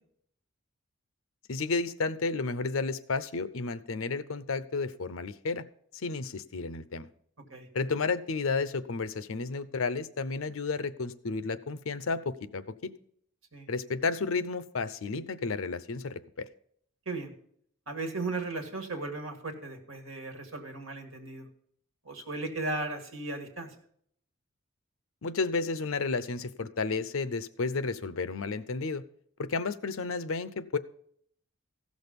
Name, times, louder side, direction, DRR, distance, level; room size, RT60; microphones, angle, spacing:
voice 1, 1.5-5.6 5.9-7.1 7.7-12.9 13.7-16.5 25.2-29.0 29.4-30.8, left 4 dB, 75° left, 15 dB, 0.7 m, -32 dB
voice 2, 17.9-21.5 22.1-23.7, right 2 dB, 70° right, 4 dB, 2.0 m, -36 dB
15.0 x 6.3 x 5.2 m, 0.64 s
head